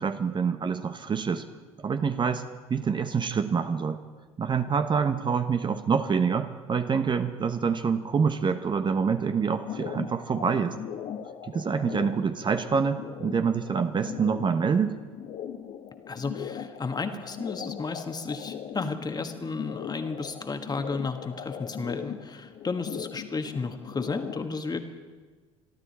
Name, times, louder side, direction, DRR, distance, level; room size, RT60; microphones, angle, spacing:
voice 1, 0.0-1.4 1.8-2.4 2.7-4.0 4.4-10.8 11.4-14.9, right 6 dB, 30° right, 9 dB, 0.9 m, -26 dB
sound 1, 9.5-24.4, left 9 dB, 55° left, 1.3 m, -40 dB
voice 2, 16.1-25.0, left 4 dB, 25° left, 7 dB, 1.6 m, -33 dB
26.5 x 12.0 x 4.2 m, 1.4 s
hypercardioid pair, 60°, 16 cm